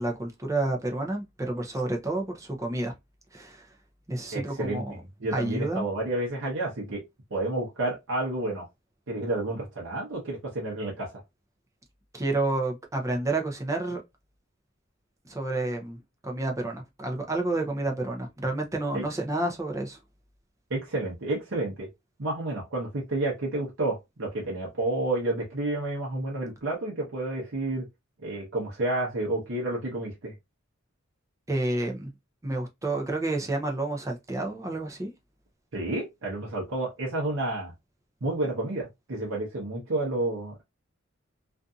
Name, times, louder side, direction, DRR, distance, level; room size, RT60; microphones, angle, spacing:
voice 1, 0.0-2.9 3.3-3.7 4.1-4.9 5.3-5.8 12.1-14.0 15.2-20.0 31.5-32.1 32.4-35.1, right 2 dB, 15° right, 0.6 m, -30 dB
voice 2, 4.3-4.8 5.2-7.0 7.3-8.6 9.1-11.2 18.9-19.0 20.7-21.9 22.2-27.9 28.2-30.3 35.7-37.7 38.2-40.6, right 2 dB, 70° right, 0.9 m, -30 dB
2.6 x 2.5 x 2.3 m
head